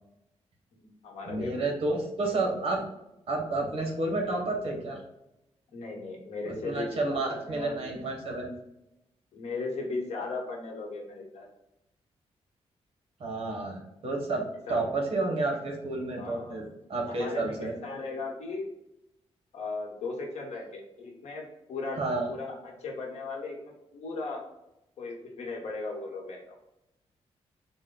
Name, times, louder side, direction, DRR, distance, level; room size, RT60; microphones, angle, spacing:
voice 1, 0.7-1.7 5.7-7.9 9.3-11.5 14.7-14.8 16.2-16.6 17.1-18.7 19.5-21.4 21.7-22.0 22.3-24.4 25.0-26.6, left 3 dB, 85° left, -1 dB, 1.1 m, -37 dB
voice 2, 1.3-2.8 3.3-5.0 6.5-8.5 13.2-17.7 22.0-22.3, right 2 dB, 55° right, 0 dB, 1.1 m, -30 dB
4.2 x 2.2 x 3.7 m, 0.87 s
wide cardioid pair, 170°, 11 cm